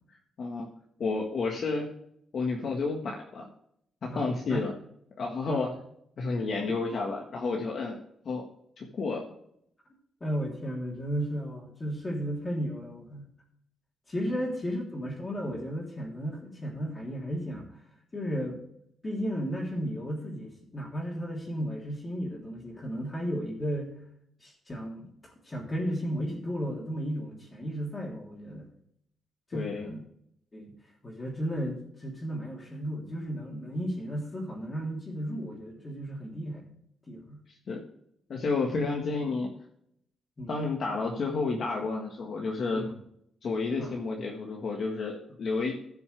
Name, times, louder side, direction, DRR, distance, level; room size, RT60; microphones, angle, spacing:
voice 1, 0.1-0.7 1.0-1.9 2.3-3.4 4.0-4.7 5.2-5.7 6.2-8.0 8.2-8.4 8.8-9.3 29.5-30.0 37.7-37.8 38.3-39.5 40.5-42.9 43.4-45.8, left 3 dB, 45° left, 0 dB, 1.6 m, -31 dB
voice 2, 4.1-4.6 5.5-5.7 10.2-13.2 14.1-17.7 18.1-18.6 19.0-23.9 24.4-25.1 25.4-28.7 29.5-30.0 30.5-30.7 31.0-36.6 37.1-37.4 38.6-38.7 40.4-40.6 42.8-43.0 43.8-44.0, equal, 20° left, -1 dB, 3.3 m, -34 dB
15.0 x 6.9 x 3.4 m, 0.71 s
cardioid pair, 145°, 0 cm